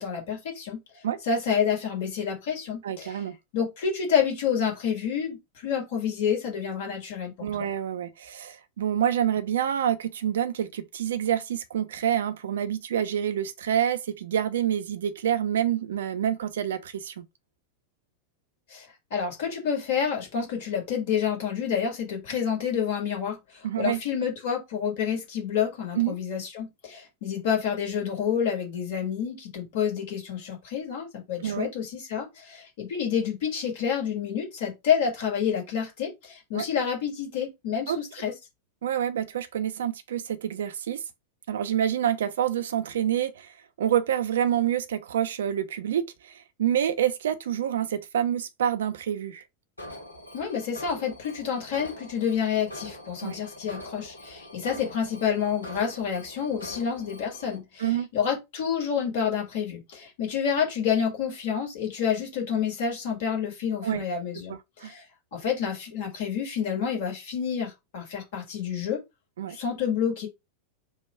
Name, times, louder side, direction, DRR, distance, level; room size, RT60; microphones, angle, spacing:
voice 1, 0.0-3.2 3.5-7.7 18.7-38.3 50.3-65.0 65.3-69.0 69.5-70.3, left 7 dB, 55° left, 1.6 m, -29 dB
voice 2, 2.8-3.3 7.4-17.2 23.6-24.0 26.0-26.2 31.4-31.7 36.5-36.7 37.9-38.0 38.8-41.0 41.5-49.4 53.2-53.4 57.8-58.1 63.8-64.0 64.5-64.9 69.4-69.6, right 10 dB, 60° right, 0.5 m, -27 dB
Alarm, 49.8-57.6, left 1 dB, 85° left, 1.2 m, -43 dB
3.4 x 2.3 x 4.2 m
figure-of-eight pair, 90°, 0 cm